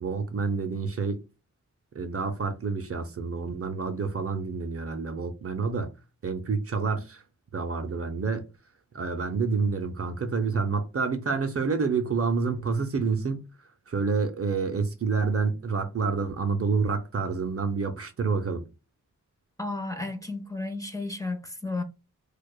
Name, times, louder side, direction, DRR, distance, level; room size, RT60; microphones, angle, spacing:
voice 1, 0.0-1.2 1.9-5.9 6.2-7.2 7.5-8.5 8.9-13.4 13.9-18.6, right 4 dB, 50° right, 0.6 m, -28 dB
voice 2, 19.6-21.8, left 2 dB, 10° left, 0.7 m, -33 dB
4.6 x 2.3 x 2.2 m
wide cardioid pair, 85°, 30 cm